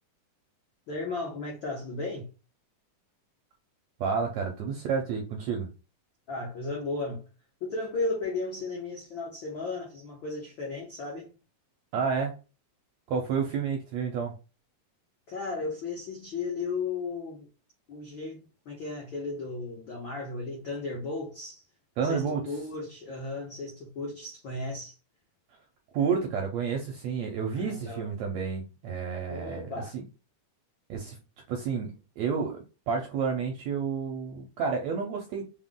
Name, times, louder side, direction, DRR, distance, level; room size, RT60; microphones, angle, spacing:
voice 1, 0.9-2.3 6.3-7.2 7.6-11.3 15.3-17.5 17.9-18.4 18.6-21.6 22.0-25.0 27.5-28.1 29.3-29.9, left 3 dB, 85° left, 1.0 m, -35 dB
voice 2, 4.0-5.7 11.9-12.3 13.1-14.3 22.0-22.4 25.9-29.7 29.9-30.0 30.9-31.2 31.5-35.5, right 6 dB, 80° right, 1.6 m, -30 dB
5.6 x 2.1 x 3.6 m
omnidirectional pair, 3.8 m